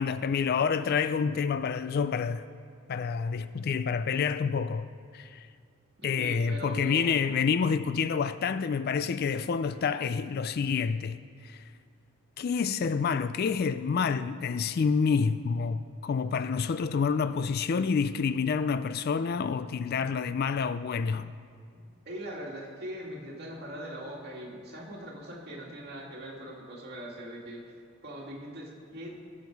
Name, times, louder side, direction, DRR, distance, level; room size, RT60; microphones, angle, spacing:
voice 1, 0.0-2.5 2.9-5.5 6.0-11.7 12.4-21.3, left 5 dB, 45° left, 0.3 m, -28 dB
voice 2, 6.2-7.1 21.7-27.7 28.0-29.2, equal, 50° right, 2.2 m, -41 dB
21.0 x 7.3 x 4.7 m
head